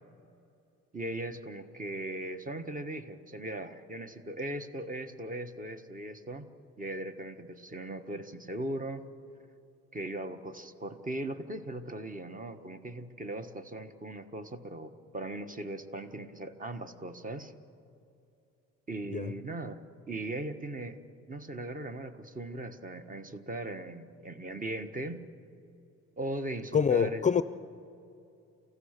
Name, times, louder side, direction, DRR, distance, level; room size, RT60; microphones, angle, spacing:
voice 1, 0.9-6.5 6.8-9.1 9.9-17.5 18.9-19.8 20.1-21.0 21.3-25.2 26.2-27.2, right 1 dB, 25° right, 8 dB, 1.4 m, -39 dB
voice 2, 26.7-27.4, left 7 dB, 25° left, 13 dB, 0.5 m, -25 dB
29.5 x 15.5 x 6.7 m, 2.7 s
cardioid pair, 90°, 30 cm